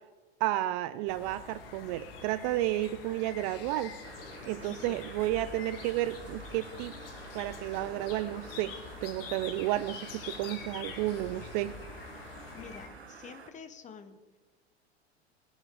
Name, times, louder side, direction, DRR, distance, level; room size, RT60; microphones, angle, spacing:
voice 1, 0.4-3.9 4.5-6.9 7.3-8.7 9.0-11.7, right 15 dB, 40° right, 14 dB, 0.5 m, -32 dB
sound 1, 1.1-12.9, left 5 dB, 60° left, 1.8 m, -45 dB
sound 2, 4.0-13.5, right 6 dB, 80° right, 1.2 m, -50 dB
voice 2, 4.6-5.0 12.5-14.4, left 6 dB, 20° left, 10 dB, 1.1 m, -48 dB
20.0 x 10.5 x 3.8 m, 1.3 s
figure-of-eight pair, 90°, 32 cm